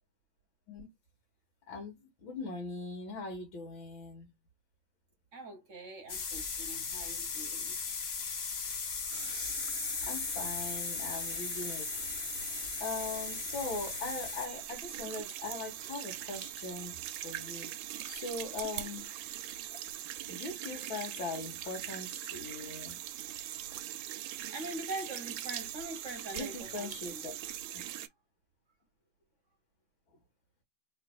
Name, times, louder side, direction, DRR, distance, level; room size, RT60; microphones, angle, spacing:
voice 1, 1.7-4.3 10.0-11.9 12.2-12.3 12.8-17.7 18.1-19.1 19.7-19.8 20.3-23.0 26.3-27.4, left 3 dB, 80° left, 2.1 m, -40 dB
voice 2, 5.3-7.8 19.9-20.2 24.4-27.2, right 2 dB, 45° right, 1.2 m, -43 dB
sound 1, 6.1-14.5, left 5 dB, 60° left, 0.6 m, -37 dB
sound 2, 9.1-28.1, right 12 dB, 80° right, 1.3 m, -42 dB
3.6 x 3.2 x 2.3 m
omnidirectional pair, 2.2 m